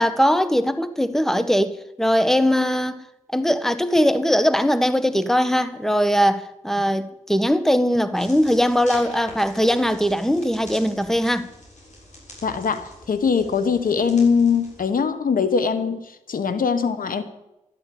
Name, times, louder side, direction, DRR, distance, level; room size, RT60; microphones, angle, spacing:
voice 1, 0.0-3.0 3.3-11.5, equal, 5° left, 1.3 m, -20 dB
sound 1, 8.1-14.9, left 1 dB, 60° left, 7.2 m, -44 dB
voice 2, 12.4-16.0 16.3-17.2, left 6 dB, 85° left, 1.2 m, -21 dB
12.5 x 11.5 x 8.6 m
cardioid pair, 50°, 14 cm